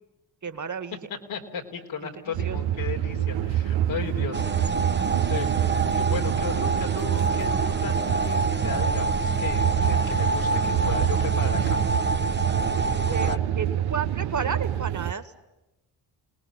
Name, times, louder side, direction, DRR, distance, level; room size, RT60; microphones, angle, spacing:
voice 1, 0.4-1.0 2.0-2.6 13.1-13.3 13.6-15.3, right 6 dB, 40° right, 10 dB, 2.1 m, -32 dB
voice 2, 1.3-4.8 5.1-5.5 5.9-11.8 13.0-13.4, left 6 dB, 85° left, 1 dB, 3.7 m, -35 dB
sound 1, 2.3-15.1, right 11 dB, 85° right, 0.9 m, -26 dB
sound 2, 4.3-13.4, right 3 dB, 25° right, 1.0 m, -27 dB
28.0 x 19.5 x 10.0 m, 1.0 s
supercardioid pair, 50°, 45 cm